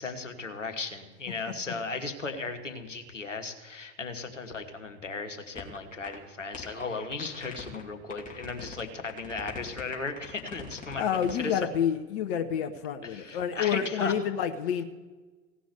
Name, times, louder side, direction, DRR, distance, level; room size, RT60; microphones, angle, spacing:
voice 1, 0.0-11.6 13.0-14.1, left 4 dB, 85° left, 6 dB, 1.4 m, -36 dB
sound 1, 5.6-5.8 6.0-6.2 6.5-7.8 8.1-8.8 9.1-11.5, left 4 dB, 20° left, 2.8 m, -43 dB
voice 2, 11.0-14.8, left 8 dB, 50° left, 9 dB, 0.9 m, -29 dB
16.5 x 6.1 x 9.7 m, 1.3 s
figure-of-eight pair, 85°, 36 cm